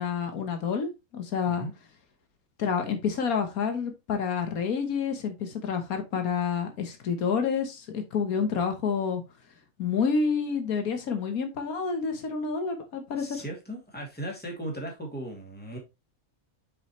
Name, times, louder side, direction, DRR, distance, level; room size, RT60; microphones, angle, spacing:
voice 1, 0.0-1.7 2.6-9.2 9.8-13.4, left 6 dB, 85° left, 1.6 m, -28 dB
voice 2, 13.1-15.8, right 1 dB, 5° left, 2.4 m, -37 dB
6.8 x 5.4 x 3.0 m
omnidirectional pair, 1.5 m